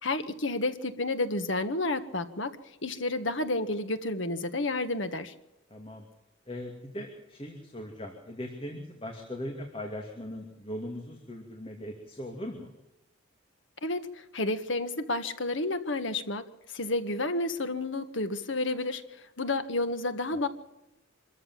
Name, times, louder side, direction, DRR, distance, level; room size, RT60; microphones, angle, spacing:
voice 1, 0.0-2.5 2.8-5.3 13.8-20.5, left 2 dB, 65° left, 10 dB, 1.7 m, -31 dB
voice 2, 5.7-6.1 6.5-12.7, left 1 dB, 30° left, 2 dB, 2.7 m, -39 dB
25.5 x 14.0 x 7.5 m, 0.94 s
head